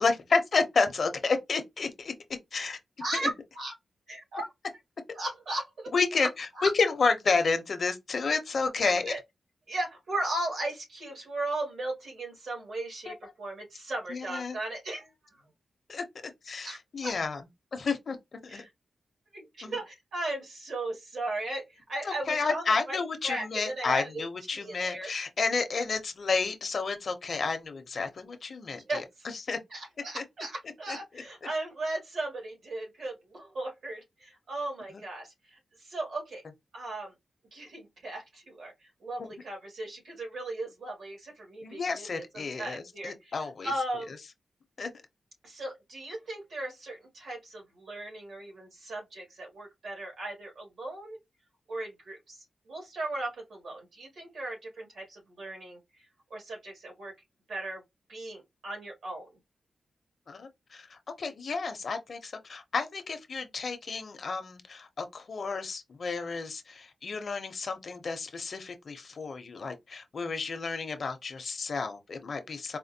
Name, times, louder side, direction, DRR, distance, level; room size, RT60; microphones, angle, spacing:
voice 1, 0.0-2.1 2.5-2.8 3.2-3.3 5.9-9.1 13.1-13.2 14.1-14.6 15.9-17.4 17.7-18.6 19.6-19.8 22.0-29.0 29.5-29.6 30.1-30.2 30.9-31.0 39.2-39.3 41.6-43.7 44.8-44.9 60.3-72.8, left 4 dB, 50° left, 0.6 m, -31 dB
voice 2, 3.0-3.7 4.1-4.5 5.2-5.9 6.6-6.7 8.8-9.2 9.7-15.1 16.6-17.1 18.5-18.7 19.3-23.0 23.2-24.2 24.6-25.1 28.7-29.3 29.7-36.4 36.7-37.1 37.5-43.4 43.6-44.1 45.4-51.2 51.7-57.1 57.5-57.8 58.1-59.3, right 2 dB, 70° right, 1.9 m, -37 dB
4.2 x 2.2 x 2.7 m
wide cardioid pair, 170°, 0 cm